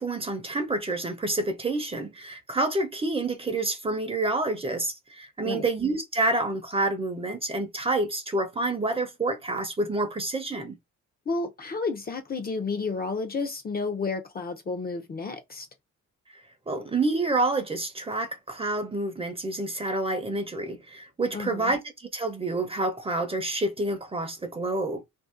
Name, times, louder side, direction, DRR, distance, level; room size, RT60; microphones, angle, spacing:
voice 1, 0.0-10.8 16.3-21.8 22.1-25.0, right 2 dB, 20° right, 0.7 m, -28 dB
voice 2, 11.3-15.7 21.3-21.7, left 4 dB, 30° left, 0.7 m, -31 dB
2.7 x 2.3 x 3.6 m
cardioid pair, 90°, 30 cm